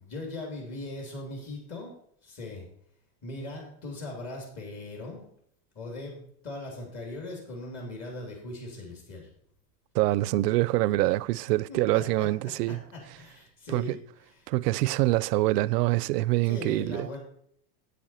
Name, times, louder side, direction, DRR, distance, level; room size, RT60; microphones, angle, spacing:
voice 1, 0.0-2.0 2.2-2.7 3.2-5.2 5.7-9.3 11.7-12.3 12.7-14.5 16.4-17.2, left 2 dB, 35° left, 2.9 m, -40 dB
voice 2, 9.9-12.8 13.7-14.0 14.5-17.1, right 18 dB, 70° right, 0.5 m, -25 dB
9.1 x 8.5 x 4.3 m
supercardioid pair, 155°, 50 cm